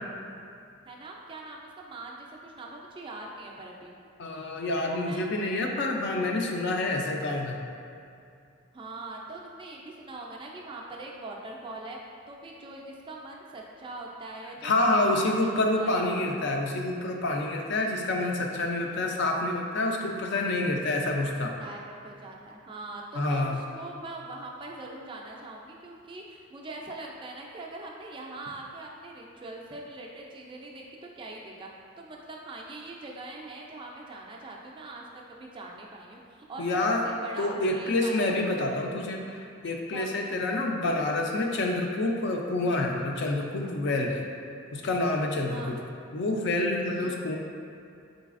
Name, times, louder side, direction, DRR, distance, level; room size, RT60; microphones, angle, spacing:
voice 1, 0.9-3.9 4.8-5.3 8.7-16.0 21.6-31.7 32.0-38.6 39.0-39.2 39.9-40.4 45.5-45.7 47.0-47.2, right 2 dB, 25° right, -1 dB, 0.3 m, -42 dB
voice 2, 4.2-7.6 14.6-21.5 23.1-23.6 36.6-37.0 37.4-44.2 44.7-45.8 46.1-47.4, left 2 dB, 55° left, 1 dB, 0.4 m, -27 dB
4.0 x 3.9 x 2.4 m, 2.5 s
head